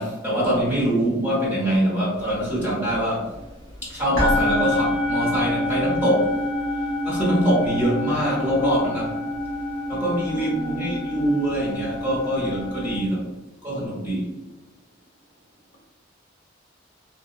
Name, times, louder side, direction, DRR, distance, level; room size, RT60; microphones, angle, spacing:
voice 1, 0.0-3.3 3.8-6.3 7.0-9.1 9.9-13.3 13.6-14.3, equal, 10° right, -7 dB, 0.6 m, -24 dB
sound 1, 2.3-2.4 2.7-3.8 4.1-13.0, left 1 dB, 85° right, 1.1 m, -27 dB
voice 2, 10.3-11.1, right 2 dB, 50° left, 1 dB, 0.5 m, -34 dB
2.6 x 2.1 x 2.4 m, 1.1 s
head